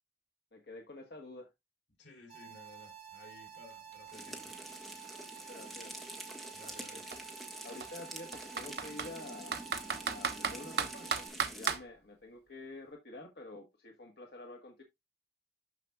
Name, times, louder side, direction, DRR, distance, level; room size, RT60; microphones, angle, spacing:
voice 1, 0.5-1.5 5.5-5.9 6.9-7.0 7.6-9.6 9.9-14.8, left 2 dB, 60° left, 1.3 m, -48 dB
voice 2, 2.0-4.5 6.5-7.1, left 2 dB, 85° left, 3.9 m, -56 dB
sound 1, 2.3-11.3, right 9 dB, 35° right, 4.5 m, -51 dB
Computer keyboard, 3.5-3.6 3.9-5.9 6.7-6.8 7.1-7.2 7.8-9.1 9.5-11.8, right 5 dB, 60° right, 1.1 m, -35 dB
sound 2, 4.1-11.7, equal, ahead, 1.5 m, -47 dB
12.5 x 5.0 x 2.3 m
head